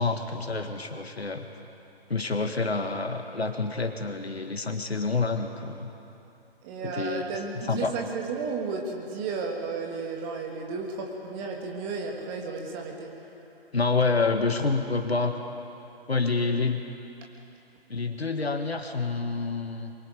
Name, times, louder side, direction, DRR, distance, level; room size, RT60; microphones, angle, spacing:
voice 1, 0.0-1.5 2.1-5.9 6.8-7.3 7.7-7.9 13.7-15.4 16.1-16.9 17.9-19.9, left 4 dB, 75° left, 6 dB, 1.9 m, -28 dB
voice 2, 6.6-13.2, right 4 dB, 15° right, 1 dB, 1.7 m, -33 dB
23.5 x 22.0 x 5.3 m, 2.9 s
figure-of-eight pair, 140°, 32 cm